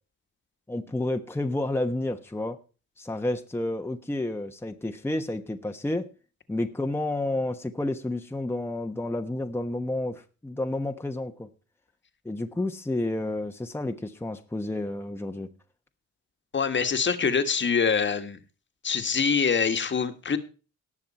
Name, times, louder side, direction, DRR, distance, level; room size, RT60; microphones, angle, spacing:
voice 1, 0.7-2.6 3.0-6.1 6.5-11.5 12.2-15.5, left 2 dB, 10° left, 1.2 m, -30 dB
voice 2, 16.5-18.4 18.8-20.4, left 6 dB, 40° left, 1.7 m, -24 dB
18.5 x 6.5 x 4.3 m
cardioid pair, 90°, 30 cm